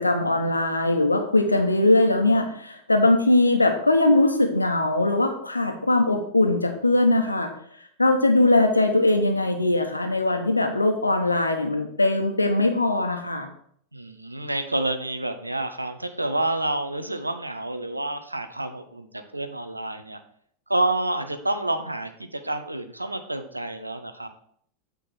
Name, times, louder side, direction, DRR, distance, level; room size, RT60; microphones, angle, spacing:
voice 1, 0.0-7.5 8.0-13.5, left 2 dB, 85° left, 5 dB, 1.0 m, -21 dB
voice 2, 13.9-20.2 20.7-24.3, right 2 dB, 85° right, 8 dB, 0.7 m, -28 dB
8.5 x 3.8 x 6.2 m, 0.63 s
figure-of-eight pair, 90°, 0 cm